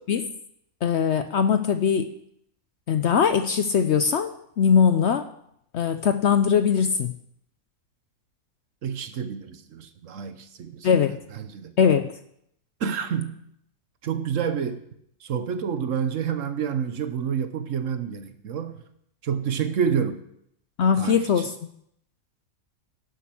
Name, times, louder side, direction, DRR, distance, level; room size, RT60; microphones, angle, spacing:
voice 1, 0.8-2.1 2.9-5.3 5.7-7.1 10.8-11.2 11.8-12.1 20.8-21.5, left 7 dB, 65° left, 10 dB, 0.7 m, -21 dB
voice 2, 8.8-11.7 12.8-13.4 14.0-14.8 15.2-18.8 19.2-20.2 20.9-21.4, right 7 dB, 60° right, 10 dB, 1.1 m, -28 dB
11.5 x 7.8 x 6.0 m, 0.72 s
omnidirectional pair, 1.5 m